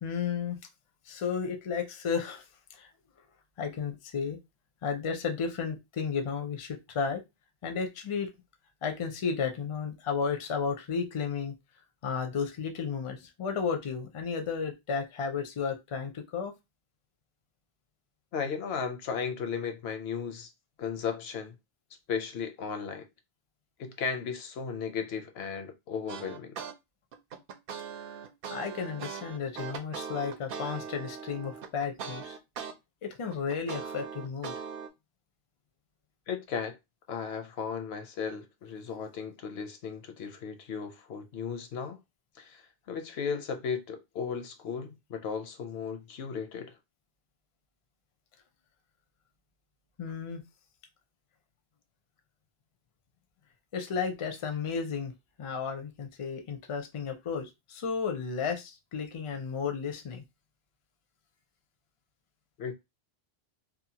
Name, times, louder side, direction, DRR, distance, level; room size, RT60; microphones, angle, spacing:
voice 1, 0.0-0.6 1.1-2.4 2.7-2.9 3.6-4.4 4.8-7.2 7.6-8.3 8.8-11.5 12.0-16.5 27.9-28.1 28.5-32.4 33.0-34.5 50.0-50.4 53.7-55.1 55.4-60.2, left 6 dB, 40° left, 0.5 m, -33 dB
voice 2, 18.3-20.5 20.8-21.5 22.1-23.0 23.8-26.6 36.3-36.8 37.1-42.0 42.4-46.7 62.6-62.7, left 6 dB, 80° left, 0.8 m, -35 dB
sound 1, 26.1-26.7 27.1-32.7 33.1-34.9, right 6 dB, 65° right, 0.7 m, -40 dB
2.8 x 2.3 x 2.7 m
omnidirectional pair, 1.1 m